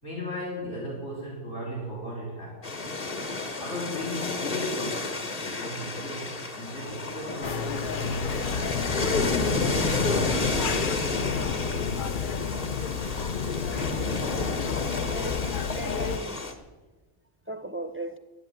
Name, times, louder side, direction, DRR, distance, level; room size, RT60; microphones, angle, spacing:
voice 1, 0.0-2.7 3.6-8.8, left 1 dB, 80° left, -4 dB, 4.3 m, -36 dB
sound 1, 2.6-16.5, left 3 dB, 35° left, 1.2 m, -31 dB
sound 2, 7.4-16.2, left 6 dB, 50° left, 0.8 m, -30 dB
voice 2, 15.0-16.6 17.5-18.2, right 1 dB, 15° right, 9 dB, 0.4 m, -37 dB
11.0 x 11.0 x 8.8 m, 1.2 s
omnidirectional pair, 1.2 m